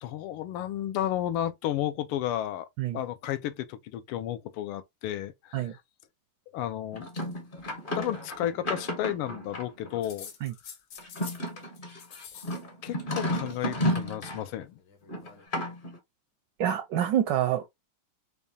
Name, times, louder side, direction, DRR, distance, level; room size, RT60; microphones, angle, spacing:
voice 1, 0.0-2.7 2.9-5.7 6.5-7.1 7.9-10.3 12.8-14.8, left 12 dB, 90° left, 1.5 m, -32 dB
sound 1, 6.9-10.0 11.0-14.5 15.1-16.0, equal, 50° left, 0.6 m, -33 dB
sound 2, 10.0-11.5 11.8-12.6 12.9-13.7 14.8-15.5, left 7 dB, 75° left, 1.7 m, -47 dB
voice 2, 16.6-17.7, right 11 dB, 75° right, 1.0 m, -27 dB
5.2 x 2.3 x 2.6 m
omnidirectional pair, 2.3 m